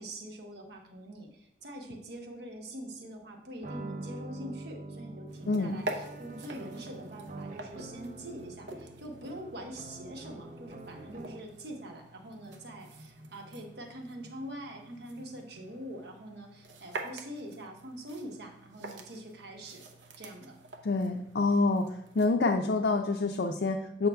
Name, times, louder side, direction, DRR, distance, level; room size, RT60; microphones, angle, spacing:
voice 1, 0.0-19.8 20.2-20.6, right 1 dB, 70° right, 2 dB, 1.1 m, -44 dB
sound 1, 3.6-11.7, right 2 dB, 45° right, 0.5 m, -45 dB
sound 2, 5.3-22.3, right 2 dB, 90° right, 0.7 m, -46 dB
voice 2, 5.5-5.8 20.8-21.9 22.2-24.1, left 3 dB, 70° left, 4 dB, 0.4 m, -27 dB
7.8 x 5.6 x 2.3 m, 0.78 s
head